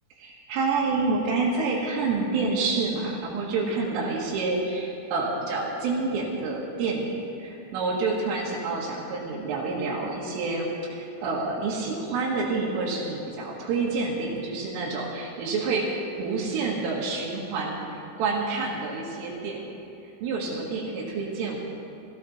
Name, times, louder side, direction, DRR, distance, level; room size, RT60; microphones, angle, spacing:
voice 1, 0.2-19.8 20.2-21.6, right 3 dB, 80° right, -4 dB, 4.3 m, -28 dB
18.5 x 16.5 x 4.3 m, 2.9 s
omnidirectional pair, 5.7 m